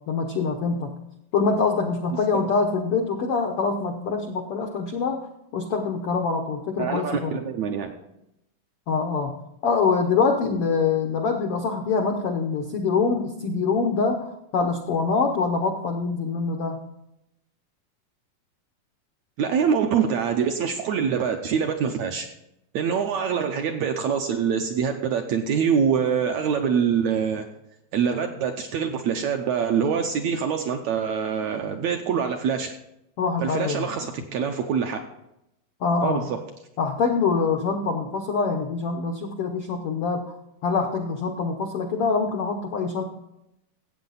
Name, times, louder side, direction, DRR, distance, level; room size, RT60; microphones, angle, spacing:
voice 1, 0.1-0.9 1.3-7.4 8.9-9.3 9.6-16.8 33.2-33.9 35.8-36.2 36.8-40.3 40.6-43.0, left 4 dB, 85° left, 4 dB, 1.2 m, -24 dB
voice 2, 6.8-7.9 19.4-22.3 22.7-27.5 27.9-32.7 33.4-35.0 36.0-36.4, right 7 dB, 75° right, 4 dB, 1.7 m, -25 dB
14.5 x 8.3 x 4.0 m, 0.84 s
omnidirectional pair, 3.9 m